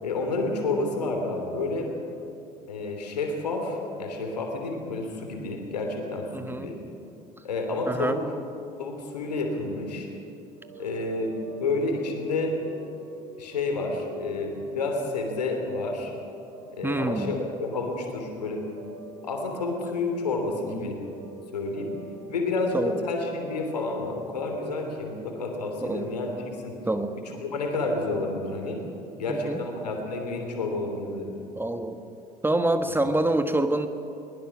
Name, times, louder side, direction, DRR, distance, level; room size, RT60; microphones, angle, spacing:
voice 1, 0.0-1.9 2.7-6.8 7.4-8.2 8.8-10.1 10.8-12.5 13.4-16.1 16.7-18.6 19.2-21.0 21.5-22.0 22.3-26.3 26.6-26.7 27.5-28.8 29.2-31.3 32.8-32.9, left 3 dB, 80° left, 3 dB, 3.0 m, -30 dB
voice 2, 6.3-6.8 7.8-8.2 16.8-17.3 20.6-20.9 22.7-23.0 25.8-26.1 26.9-27.1 29.3-29.6 31.5-32.0 32.4-33.9, right 2 dB, 10° right, 8 dB, 1.3 m, -26 dB
sound 1, 10.6-27.9, right 4 dB, 65° right, 3.7 m, -46 dB
22.5 x 20.0 x 6.0 m, 2.7 s
figure-of-eight pair, 60°, 20 cm